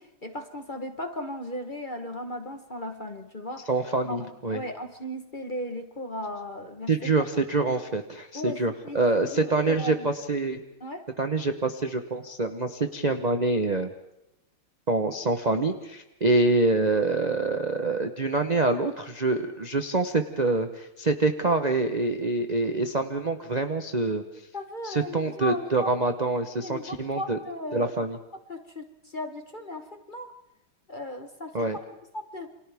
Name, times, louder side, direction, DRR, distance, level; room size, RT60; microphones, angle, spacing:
voice 1, 0.0-3.7 4.0-7.1 8.3-10.1 10.8-11.0 24.5-26.0 26.6-28.0 28.5-30.3 30.9-32.5, left 1 dB, 30° left, 6 dB, 1.1 m, -36 dB
voice 2, 3.7-4.6 6.9-10.6 11.2-13.9 14.9-24.2 25.1-27.4 27.7-28.2 31.5-31.8, right 3 dB, 35° right, 7 dB, 0.6 m, -26 dB
29.0 x 26.5 x 3.5 m, 0.89 s
omnidirectional pair, 2.3 m